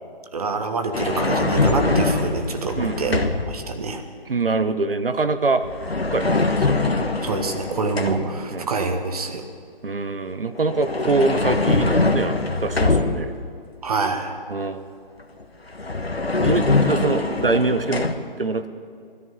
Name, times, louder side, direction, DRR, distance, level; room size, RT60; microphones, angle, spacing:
voice 1, 0.3-4.0 7.2-9.4 13.8-14.4, right 4 dB, 40° right, 6 dB, 1.5 m, -26 dB
sound 1, 0.9-3.6 5.6-8.4 10.6-13.5 15.4-15.5 15.7-18.1, left 3 dB, 85° left, 1.4 m, -23 dB
voice 2, 2.8-3.3 4.3-5.6 6.1-7.1 8.5-8.7 9.8-13.3 14.5-14.8 16.4-18.1 18.4-18.7, right 3 dB, 65° right, 10 dB, 1.1 m, -24 dB
17.5 x 13.5 x 5.4 m, 2.4 s
figure-of-eight pair, 145°, 30 cm